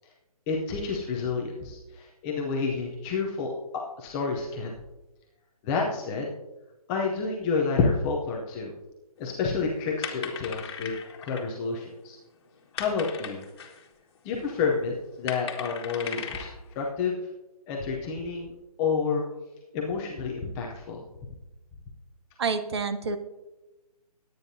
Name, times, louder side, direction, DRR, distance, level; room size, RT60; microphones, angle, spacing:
voice 1, 0.5-3.5 4.0-4.7 5.6-6.3 6.9-8.7 9.2-10.9 11.2-12.2 12.7-13.4 14.2-16.5 16.8-17.2 17.7-18.5 18.8-19.2 19.7-21.0, left 4 dB, 10° left, -1 dB, 0.5 m, -29 dB
sound 1, 9.2-13.9 14.5-16.7, left 7 dB, 40° left, 1.5 m, -38 dB
voice 2, 22.4-23.2, right 4 dB, 40° right, 10 dB, 0.9 m, -28 dB
19.5 x 9.1 x 2.7 m, 1.0 s
hypercardioid pair, 165°, 20 cm